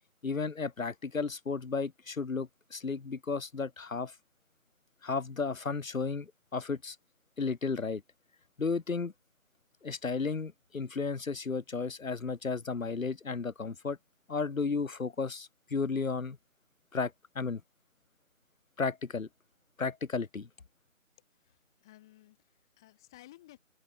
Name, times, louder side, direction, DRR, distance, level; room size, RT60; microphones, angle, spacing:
voice 1, 0.2-4.2 5.0-7.0 7.4-8.0 8.6-9.1 9.8-14.0 14.3-16.4 16.9-17.6 18.8-19.3 19.8-20.5, left 4 dB, 75° left, 1.3 m, -33 dB
voice 2, 21.2-23.6, left 16 dB, 5° left, 1.7 m, -57 dB
open air
figure-of-eight pair, 170°, 40 cm